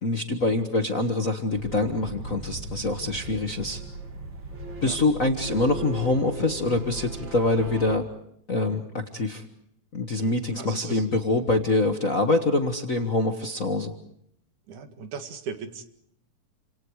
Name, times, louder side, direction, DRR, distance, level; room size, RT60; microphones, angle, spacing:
voice 1, 0.0-3.8 4.8-8.0 8.5-9.4 9.9-13.9, left 2 dB, 35° left, 5 dB, 1.4 m, -25 dB
sound 1, 1.5-8.0, right 3 dB, 40° right, 2.9 m, -38 dB
voice 2, 10.2-11.0 14.7-15.8, right 5 dB, 80° right, 8 dB, 3.5 m, -38 dB
29.5 x 27.0 x 4.9 m, 0.71 s
omnidirectional pair, 3.5 m